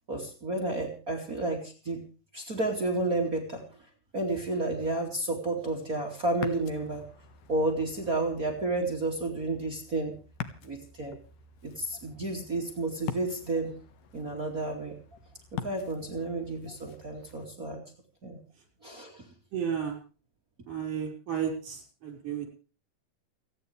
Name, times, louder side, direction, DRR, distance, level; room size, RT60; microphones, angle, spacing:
voice 1, 0.1-2.1 2.3-3.6 4.1-7.0 7.5-10.2 10.6-11.2 11.6-13.7 14.1-15.0 15.5-17.8 18.2-18.4 18.8-19.2, right 2 dB, 25° right, 2 dB, 2.8 m, -31 dB
Ocean, 6.3-17.5, left 9 dB, 80° left, 3.1 m, -45 dB
voice 2, 19.5-20.0 20.7-22.5, right 8 dB, 65° right, 3 dB, 6.8 m, -33 dB
29.5 x 10.5 x 3.4 m, 0.37 s
omnidirectional pair, 3.9 m